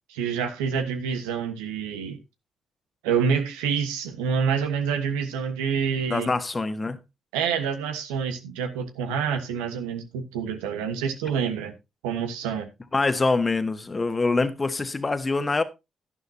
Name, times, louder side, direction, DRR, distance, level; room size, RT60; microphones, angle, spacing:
voice 1, 0.1-2.2 3.0-6.3 7.3-11.7 12.0-12.7, right 6 dB, 85° right, 1.3 m, -27 dB
voice 2, 6.1-7.0 12.9-15.6, left 3 dB, 30° left, 1.5 m, -24 dB
11.0 x 11.0 x 2.8 m
hypercardioid pair, 45°, 0 cm